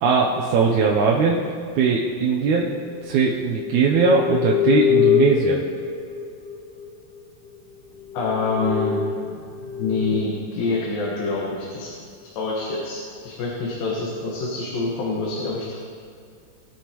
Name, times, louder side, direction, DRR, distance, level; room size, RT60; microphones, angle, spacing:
voice 1, 0.0-1.4 1.8-2.7 3.0-5.6, right 5 dB, 70° right, -2 dB, 1.9 m, -20 dB
sound 1, 3.3-7.0 7.5-7.6 8.0-10.1, left 7 dB, 55° left, 2.0 m, -24 dB
voice 2, 8.1-9.0 9.8-11.9 12.4-15.8, left 3 dB, 90° left, -4 dB, 3.2 m, -26 dB
20.5 x 9.9 x 3.0 m, 2.3 s
omnidirectional pair, 3.9 m